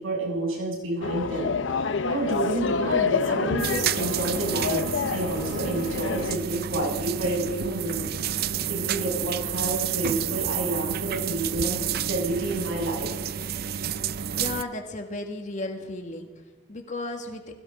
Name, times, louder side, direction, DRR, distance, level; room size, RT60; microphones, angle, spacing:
voice 1, 0.0-8.2 8.7-13.1, right 2 dB, 85° right, -3 dB, 7.0 m, -29 dB
sound 1, 1.0-6.4, left 5 dB, 65° left, 0.6 m, -28 dB
sound 2, 3.6-14.6, right 8 dB, 50° right, 0.5 m, -30 dB
voice 2, 14.4-16.3 16.7-17.4, left 2 dB, 40° left, 3 dB, 1.9 m, -34 dB
21.5 x 17.5 x 3.8 m, 1.3 s
head